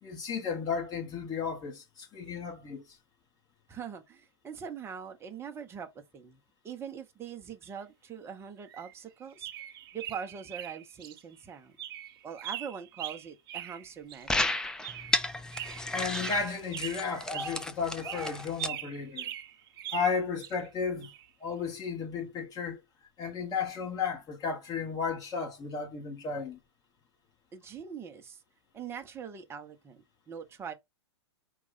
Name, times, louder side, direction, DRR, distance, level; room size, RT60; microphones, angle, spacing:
voice 1, 0.0-2.8 15.9-19.3 19.9-21.1 21.4-22.8 23.2-26.6, left 5 dB, 25° left, 1.3 m, -34 dB
voice 2, 3.7-6.4 6.6-9.5 9.9-11.7 12.2-14.3 27.5-28.4 28.7-30.7, right 7 dB, 15° right, 0.7 m, -42 dB
sound 1, 7.6-7.7 8.7-8.9 9.2-11.2 11.5-11.6 11.8-14.2 14.8-15.2 15.5-17.6 18.0-20.7 21.0-21.3, right 12 dB, 55° right, 0.6 m, -41 dB
sound 2, 14.3-18.7, left 2 dB, 5° left, 0.3 m, -33 dB
4.7 x 2.3 x 3.9 m
hypercardioid pair, 120°, 14 cm